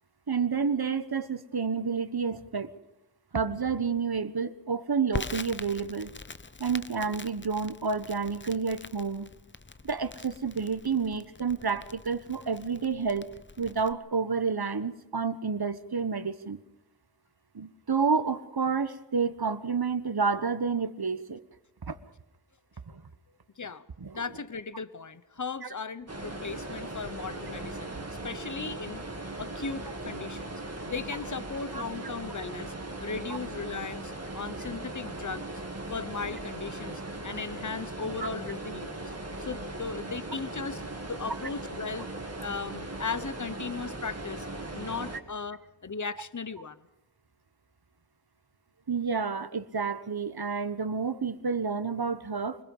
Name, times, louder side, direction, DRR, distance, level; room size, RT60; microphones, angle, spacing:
voice 1, 0.3-2.7 3.3-6.1 6.6-9.3 9.8-13.3 13.6-16.6 17.5-21.4 21.9-22.0 22.9-23.0 24.0-24.2 27.9-28.0 31.7-31.8 33.3-33.4 38.2-38.3 48.9-52.6, right 5 dB, 60° right, 12 dB, 1.3 m, -29 dB
Crackle, 5.1-13.9, left 3 dB, 25° left, 0.7 m, -43 dB
voice 2, 24.1-28.0 28.2-29.0 29.4-30.6 30.9-32.7 33.0-35.5 35.9-39.0 39.4-42.1 42.4-44.5 44.7-46.8, left 5 dB, 45° left, 14 dB, 1.1 m, -37 dB
sound 1, 26.1-45.2, right 2 dB, 35° right, 2.3 m, -38 dB
24.5 x 21.0 x 5.5 m, 0.90 s
wide cardioid pair, 65°, 42 cm